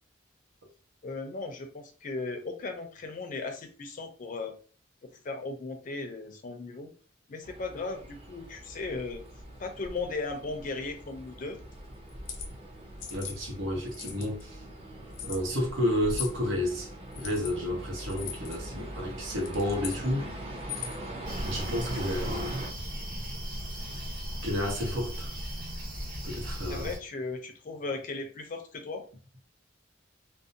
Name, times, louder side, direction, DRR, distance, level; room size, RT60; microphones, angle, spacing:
voice 1, 1.0-4.5 5.0-6.9 7.3-9.2 9.6-11.6 21.9-22.3 26.7-29.1, left 3 dB, 45° left, 0.5 m, -37 dB
sound 1, 7.4-22.7, right 1 dB, 30° right, 0.6 m, -41 dB
sound 2, 12.1-12.5 13.0-13.4 13.9-14.4 15.1-15.4 16.1-16.4 17.1-17.5 18.1-18.6 19.3-20.0 20.6-21.1, left 9 dB, 90° left, 0.6 m, -39 dB
voice 2, 13.1-14.6 15.2-16.9 17.1-20.3 21.4-22.5 24.4-25.3 26.2-26.9, left 1 dB, 80° right, 0.9 m, -31 dB
sound 3, 21.2-27.0, equal, 50° right, 1.0 m, -37 dB
2.5 x 2.0 x 2.7 m
head